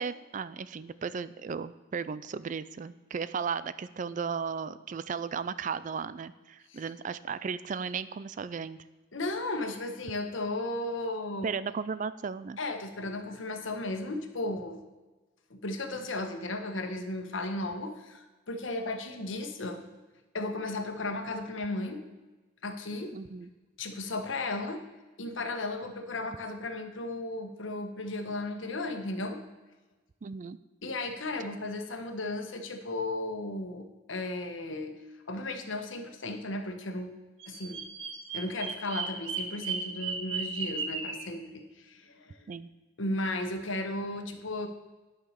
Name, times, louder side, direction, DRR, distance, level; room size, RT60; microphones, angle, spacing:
voice 1, 0.0-8.8 11.4-12.6 23.1-23.5 30.2-30.6 42.5-42.7, right 6 dB, 40° right, 15 dB, 0.3 m, -35 dB
voice 2, 9.1-11.5 12.6-14.8 15.5-19.8 20.3-22.0 22.6-23.2 23.8-24.8 25.2-29.4 30.8-35.0 35.3-37.1 37.5-37.9 38.3-42.4 43.0-44.7, left 2 dB, 75° left, 6 dB, 1.2 m, -35 dB
Bird vocalization bird call bird song, 37.4-41.2, right 5 dB, 80° right, 1.2 m, -35 dB
10.0 x 5.8 x 6.6 m, 1.2 s
head